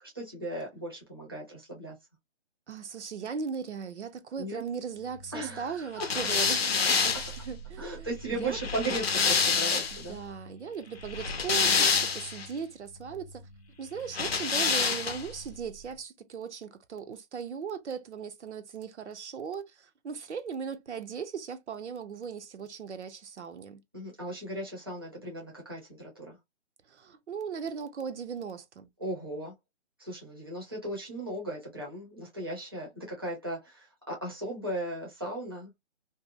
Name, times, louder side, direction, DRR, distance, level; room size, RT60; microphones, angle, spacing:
voice 1, 0.1-1.9 4.4-4.6 5.3-6.1 7.8-10.2 23.9-26.4 29.0-29.5 30.0-35.7, right 1 dB, 20° right, 0.5 m, -37 dB
voice 2, 2.7-8.1 8.4-8.6 10.1-13.4 13.8-23.8 26.9-28.9, right 6 dB, 75° right, 0.6 m, -38 dB
sound 1, 6.0-10.1 11.0-12.5 14.1-15.4, left 5 dB, 60° left, 0.6 m, -27 dB
2.6 x 2.0 x 2.4 m
hypercardioid pair, 180°, 35 cm